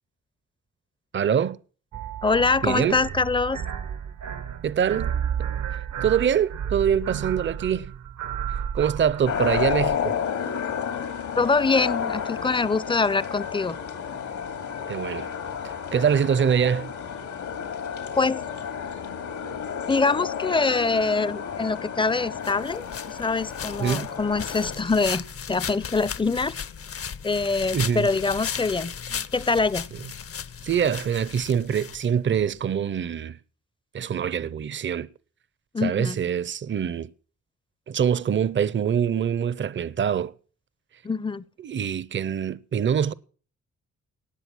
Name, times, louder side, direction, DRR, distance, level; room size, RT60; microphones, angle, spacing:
voice 1, 1.1-1.6 2.6-3.0 4.6-5.1 6.0-7.9 8.7-10.2 14.9-15.3 15.6-16.9 23.8-24.1 27.7-28.1 30.6-33.4 33.9-35.1 35.8-37.1 37.9-40.3 41.6-43.1, right 8 dB, 40° right, 0.6 m, -24 dB
sound 1, 1.9-9.9, right 8 dB, 70° right, 0.9 m, -32 dB
voice 2, 2.2-3.6 11.4-13.8 18.2-18.4 19.9-26.5 27.2-29.9 35.7-36.2 41.0-41.4, left 4 dB, 15° left, 0.6 m, -24 dB
sound 2, 9.3-24.7, left 7 dB, 80° left, 2.6 m, -31 dB
sound 3, 22.4-32.4, left 7 dB, 50° left, 0.8 m, -36 dB
18.5 x 7.8 x 6.1 m
cardioid pair, 80°, 29 cm